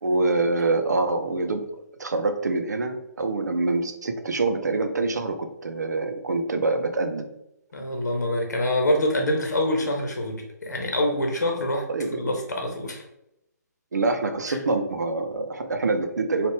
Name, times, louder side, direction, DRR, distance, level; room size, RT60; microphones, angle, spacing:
voice 1, 0.0-1.6 2.0-7.3 11.9-12.3 13.9-16.5, right 3 dB, 70° right, 6 dB, 0.6 m, -25 dB
voice 2, 7.7-11.9 12.2-13.0 14.5-14.6, left 1 dB, 70° left, 2 dB, 1.1 m, -25 dB
4.4 x 2.5 x 3.3 m, 0.83 s
figure-of-eight pair, 135°, 10 cm